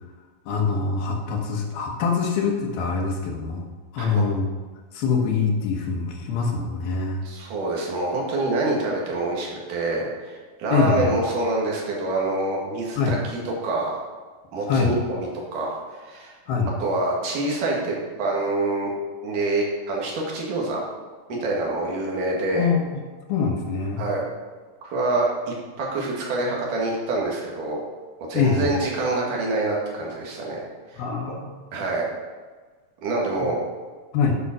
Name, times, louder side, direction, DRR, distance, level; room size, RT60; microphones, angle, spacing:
voice 1, 0.5-3.7 3.9-4.5 4.9-7.2 10.7-11.1 13.0-13.2 14.7-14.9 16.5-16.7 21.3-21.4 22.6-22.8 23.3-24.1 28.3-28.7 31.0-31.6 34.1-34.4, left 5 dB, 70° left, 1 dB, 3.1 m, -24 dB
voice 2, 7.2-13.2 13.5-14.0 14.5-16.3 16.8-18.9 19.2-20.8 21.4-22.7 24.0-24.2 24.8-27.8 28.3-31.3 31.7-32.1 33.0-33.6, right 2 dB, 60° right, -2 dB, 3.4 m, -26 dB
9.7 x 6.9 x 6.1 m, 1.4 s
omnidirectional pair, 4.6 m